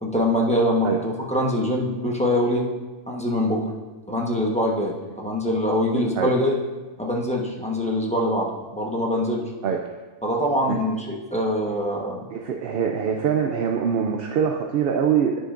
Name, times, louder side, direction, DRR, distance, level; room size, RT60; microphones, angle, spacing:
voice 1, 0.0-2.7 3.1-3.7 4.1-6.6 7.0-9.5 10.2-12.3, left 1 dB, 5° left, -3 dB, 1.0 m, -24 dB
voice 2, 12.3-15.4, right 7 dB, 60° right, 3 dB, 0.7 m, -23 dB
9.9 x 9.6 x 2.6 m, 1.3 s
omnidirectional pair, 1.3 m